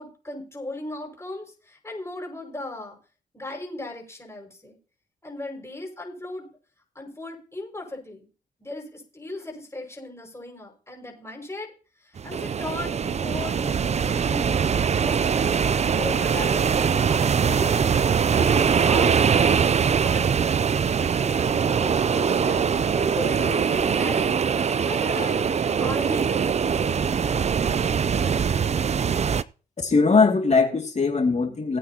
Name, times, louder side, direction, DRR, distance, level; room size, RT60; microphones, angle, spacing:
voice 1, 0.0-3.0 3.3-4.8 5.2-6.5 6.9-8.3 8.6-11.7 12.0-14.7 15.0-17.8 18.3-20.4 21.0-24.4 24.8-27.5, left 2 dB, 15° left, 0 dB, 5.7 m, -37 dB
sound 1, 12.2-29.4, right 6 dB, 40° right, 0.5 m, -22 dB
voice 2, 29.8-31.8, left 4 dB, 40° left, 3 dB, 2.3 m, -20 dB
19.0 x 8.7 x 2.9 m, 0.36 s
cardioid pair, 60°, 17 cm